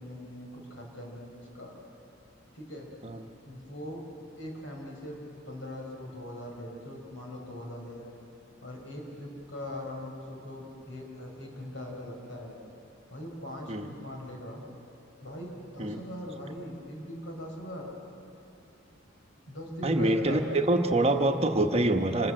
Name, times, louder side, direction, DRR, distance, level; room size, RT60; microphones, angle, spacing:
voice 1, 0.0-1.8 2.5-2.9 3.5-4.1 4.3-8.1 8.6-12.6 13.1-14.6 15.2-17.9 19.5-20.4, left 1 dB, 80° left, 0 dB, 4.9 m, -41 dB
voice 2, 19.8-22.3, right 1 dB, 35° right, 5 dB, 1.1 m, -25 dB
27.0 x 20.0 x 7.8 m, 2.9 s
head